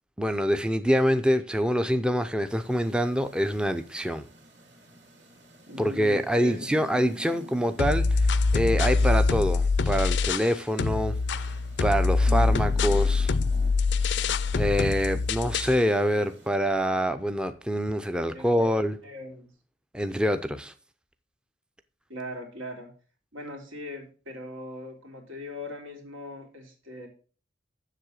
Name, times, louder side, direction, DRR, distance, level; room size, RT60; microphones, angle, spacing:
voice 1, 0.2-4.2 5.8-11.5 11.8-13.3 14.0-14.3 14.5-19.0 19.9-20.7, equal, 5° right, 0.5 m, -26 dB
sound 1, 2.5-16.5, equal, 60° right, 2.7 m, -48 dB
voice 2, 5.7-7.0 18.3-18.7 19.0-19.5 22.1-22.9 23.3-27.1, left 1 dB, 90° right, 3.1 m, -40 dB
sound 2, 7.8-10.5 10.8-15.8, left 3 dB, 60° left, 0.5 m, -24 dB
7.6 x 6.7 x 6.4 m
head